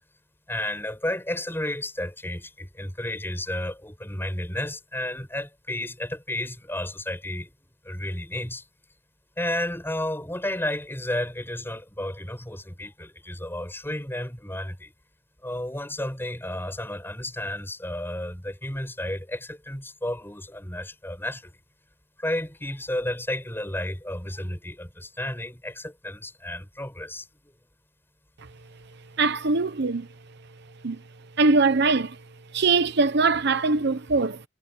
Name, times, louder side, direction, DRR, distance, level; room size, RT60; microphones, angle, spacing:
voice 1, 0.5-7.5 7.8-8.7 9.4-14.9 15.4-21.5 22.2-27.5, left 1 dB, 10° left, 5.5 m, -32 dB
voice 2, 29.2-30.1 30.8-31.0 31.4-32.2 32.5-34.4, right 3 dB, 60° right, 0.9 m, -22 dB
head